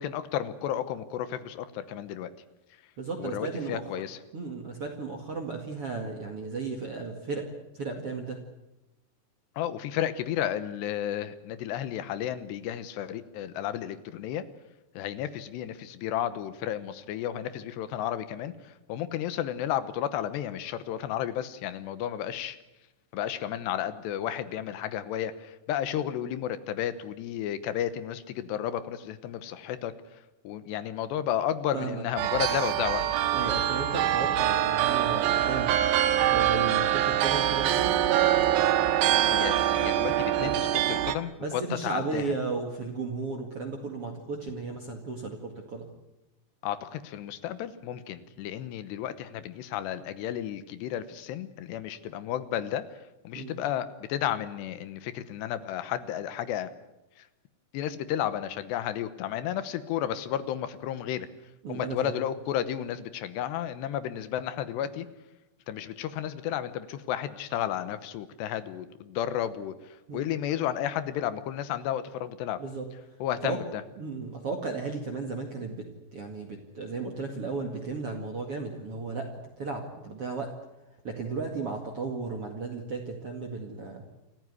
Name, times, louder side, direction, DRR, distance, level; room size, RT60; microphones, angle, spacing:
voice 1, 0.0-2.3 3.2-4.2 9.6-14.4 14.9-22.6 23.1-33.0 39.3-42.2 46.6-52.9 53.2-56.7 57.2-57.3 57.7-61.3 61.7-65.1 65.7-72.6 73.2-73.8, left 10 dB, 85° left, 12 dB, 3.2 m, -32 dB
voice 2, 3.0-3.8 4.3-7.5 7.7-8.4 31.7-32.0 33.3-35.7 36.2-38.0 40.4-40.5 41.4-45.9 53.3-53.5 61.6-62.1 70.1-70.2 72.6-72.8 73.4-73.6 74.0-75.9 76.1-79.3 79.6-80.5 81.0-84.0, right 4 dB, 40° right, 2 dB, 2.4 m, -34 dB
sound 1, 32.2-41.2, right 12 dB, 80° right, 3.3 m, -24 dB
28.0 x 14.5 x 9.7 m, 0.97 s
omnidirectional pair, 4.9 m